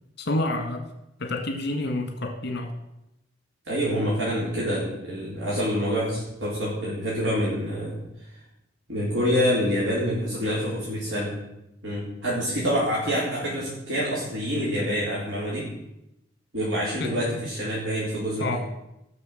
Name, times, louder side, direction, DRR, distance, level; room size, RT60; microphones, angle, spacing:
voice 1, 0.2-0.9 1.2-2.7 17.0-17.4 18.4-18.6, left 2 dB, 60° left, 5 dB, 1.7 m, -28 dB
voice 2, 3.7-8.0 8.3-8.4 8.9-11.3 11.8-15.7 16.5-18.4, equal, 75° right, -7 dB, 4.2 m, -26 dB
15.0 x 6.6 x 7.7 m, 0.88 s
head